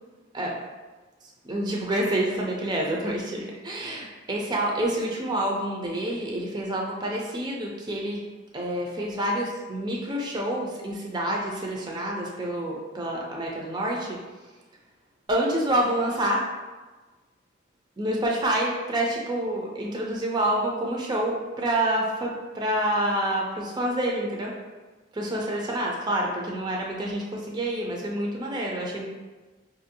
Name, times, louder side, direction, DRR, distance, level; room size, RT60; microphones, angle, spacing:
voice 1, 1.4-8.2 8.5-14.2 15.3-16.4 18.0-24.5 25.1-29.1, right 1 dB, 20° right, -2 dB, 0.4 m, -27 dB
4.3 x 2.6 x 2.7 m, 1.3 s
head